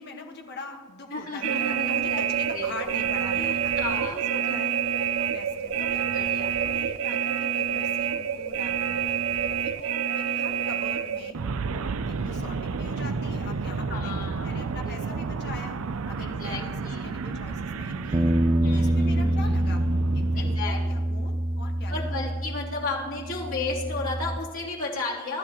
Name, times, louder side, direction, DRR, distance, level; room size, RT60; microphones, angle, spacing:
voice 1, 0.0-4.7 5.2-6.0 6.6-9.2 9.6-11.4 11.7-15.8 16.1-18.4 18.7-19.8 20.1-22.2, left 3 dB, 50° left, 3 dB, 1.6 m, -42 dB
voice 2, 1.1-2.2 2.5-2.8 3.3-4.2 4.5-4.7 6.1-6.5 12.1-12.5 13.9-15.1 16.2-17.1 18.6-19.5 20.4-20.8 21.9-25.4, left 3 dB, 65° left, -5 dB, 3.3 m, -34 dB
sound 1, 1.4-20.6, right 7 dB, 75° right, 0.5 m, -29 dB
sound 2, 18.1-24.4, right 1 dB, 20° right, 0.5 m, -26 dB
24.0 x 12.5 x 3.1 m, 1.5 s
head